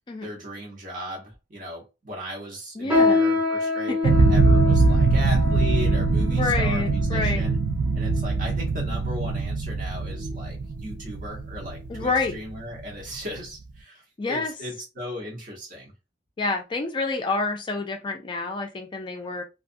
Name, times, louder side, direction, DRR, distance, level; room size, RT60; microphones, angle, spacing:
voice 1, 0.2-3.9 4.3-7.6 7.9-15.9, left 1 dB, 45° right, 1.0 m, -37 dB
voice 2, 2.8-3.2 3.9-4.1 6.3-7.4 11.9-12.4 14.2-14.5 16.4-19.4, left 3 dB, 25° left, 0.3 m, -28 dB
sound 1, 2.9-8.6 9.2-9.4 10.1-10.4 10.8-11.0 11.7-11.8, left 3 dB, 5° right, 0.7 m, -26 dB
sound 2, 4.0-12.9, right 3 dB, 75° right, 0.4 m, -22 dB
2.4 x 2.3 x 2.5 m
head